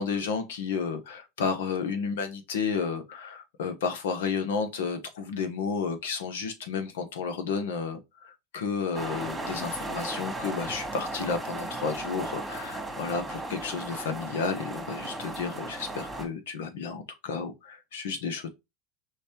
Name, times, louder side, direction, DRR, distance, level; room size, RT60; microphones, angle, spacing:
voice 1, 0.0-18.5, left 5 dB, 85° left, 1.1 m, -32 dB
sound 1, 8.9-16.2, right 2 dB, 10° right, 1.9 m, -36 dB
5.1 x 3.3 x 2.9 m
supercardioid pair, 115°, 0 cm